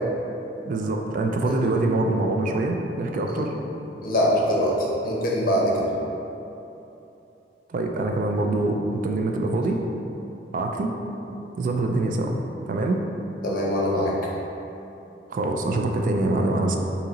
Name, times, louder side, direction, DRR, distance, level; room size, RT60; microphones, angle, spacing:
voice 1, 0.7-3.5 7.7-9.8 10.5-10.9 11.6-12.4 12.7-13.0 15.3-16.8, right 2 dB, 50° right, 2 dB, 0.3 m, -24 dB
voice 2, 4.0-5.9 13.4-14.1, equal, 55° left, -4 dB, 0.8 m, -23 dB
3.8 x 2.8 x 4.0 m, 3.0 s
head